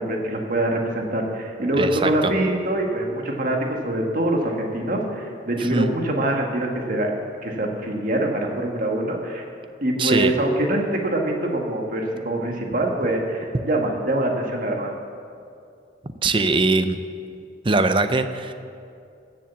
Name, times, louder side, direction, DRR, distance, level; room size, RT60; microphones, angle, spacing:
voice 1, 0.0-7.1 7.4-9.4 9.8-14.9, right 1 dB, 50° right, 1 dB, 1.7 m, -24 dB
voice 2, 1.8-2.3 5.7-5.9 10.0-10.3 16.2-17.0 17.6-18.5, right 3 dB, 30° right, 10 dB, 0.6 m, -21 dB
14.5 x 7.6 x 7.0 m, 2.4 s
head